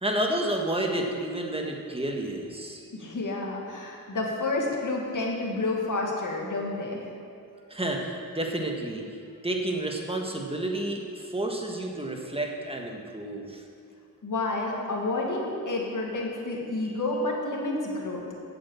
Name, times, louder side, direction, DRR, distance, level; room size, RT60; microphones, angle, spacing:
voice 1, 0.0-2.8 7.7-9.0 9.4-13.6, right 1 dB, 15° right, 1 dB, 1.7 m, -30 dB
voice 2, 2.9-7.1 14.2-18.2, left 2 dB, 65° left, -1 dB, 2.0 m, -30 dB
8.1 x 7.7 x 7.1 m, 2.4 s
cardioid pair, 50°, 33 cm